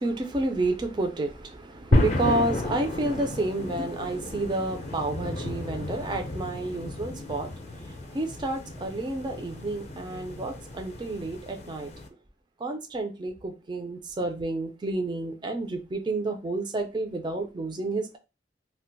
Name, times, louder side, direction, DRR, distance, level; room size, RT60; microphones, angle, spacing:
voice 1, 0.0-11.9 12.6-18.2, right 2 dB, 25° right, 0.4 m, -30 dB
sound 1, 1.9-12.1, left 2 dB, 40° left, 0.5 m, -31 dB
2.4 x 2.2 x 3.9 m
head